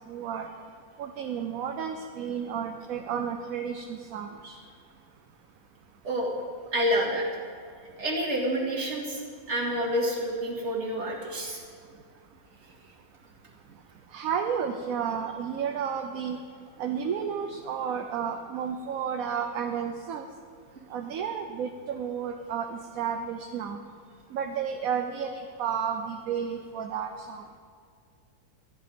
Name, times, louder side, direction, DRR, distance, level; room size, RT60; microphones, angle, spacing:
voice 1, 0.1-0.5 1.0-4.6 14.1-16.4 16.8-20.3 20.9-23.8 24.3-27.4, right 7 dB, 70° right, 5 dB, 1.1 m, -32 dB
voice 2, 6.7-7.3 8.0-9.2 9.5-11.6, equal, 45° right, -2 dB, 2.4 m, -28 dB
14.0 x 10.5 x 5.2 m, 2.2 s
omnidirectional pair, 1.6 m